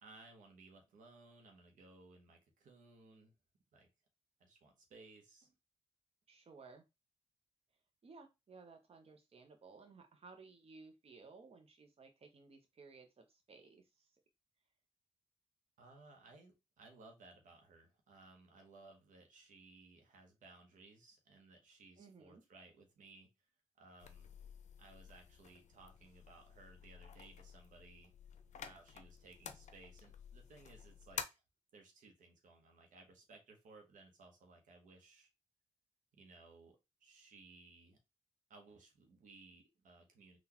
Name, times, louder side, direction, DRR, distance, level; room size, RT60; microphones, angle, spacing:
voice 1, 0.0-3.3 3.7-3.9 4.4-5.5 15.8-23.3 23.8-24.3 24.8-28.1 28.6-31.4 31.7-35.3 36.1-38.0 38.5-40.4, right 3 dB, 75° right, 3 dB, 0.9 m, -60 dB
voice 2, 6.3-6.8 8.0-14.1 22.0-22.4, right 4 dB, 50° right, 5 dB, 0.8 m, -58 dB
sound 1, 24.0-31.2, left 7 dB, 60° left, 0.5 m, -51 dB
3.7 x 2.4 x 2.9 m, 0.23 s
supercardioid pair, 55°, 13 cm